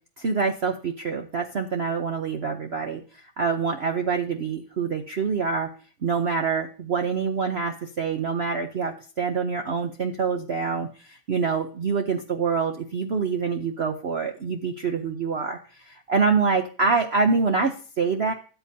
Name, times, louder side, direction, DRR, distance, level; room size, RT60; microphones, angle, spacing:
voice 1, 0.2-5.7 6.0-18.3, right 5 dB, 90° right, 5 dB, 0.5 m, -26 dB
13.5 x 8.1 x 2.7 m, 0.38 s
omnidirectional pair, 2.2 m